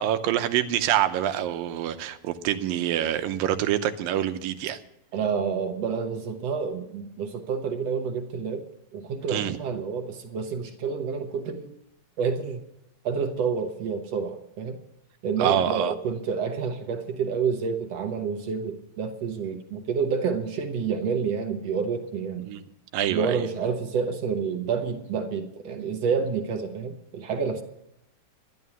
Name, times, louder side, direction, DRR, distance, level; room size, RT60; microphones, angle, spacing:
voice 1, 0.0-4.8 9.3-9.6 15.4-15.9 22.5-22.6 22.9-23.4, right 11 dB, 85° right, 10 dB, 2.5 m, -26 dB
voice 2, 5.1-8.7 8.9-11.7 12.2-12.6 13.0-14.8 15.2-22.5 23.1-27.6, right 6 dB, 65° right, 6 dB, 1.8 m, -29 dB
12.0 x 11.0 x 7.1 m, 0.80 s
omnidirectional pair, 4.1 m